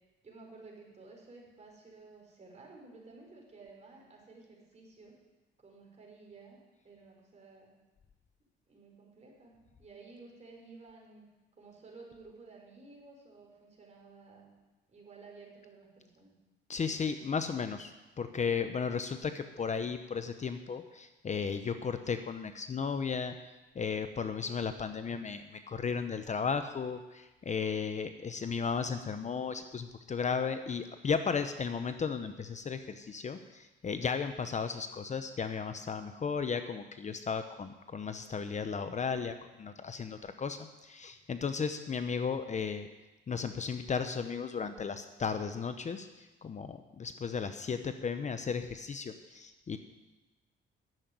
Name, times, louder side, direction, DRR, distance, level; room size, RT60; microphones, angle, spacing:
voice 1, 0.2-5.2 5.6-7.7 8.7-9.5 9.8-11.3 11.6-14.5 14.9-16.3 24.4-24.6, right 3 dB, 35° right, -1 dB, 4.7 m, -54 dB
voice 2, 16.7-23.4 23.7-42.9 43.3-49.8, left 6 dB, 35° left, 9 dB, 0.8 m, -35 dB
10.5 x 7.7 x 9.2 m, 1.1 s
cardioid pair, 90°, 20 cm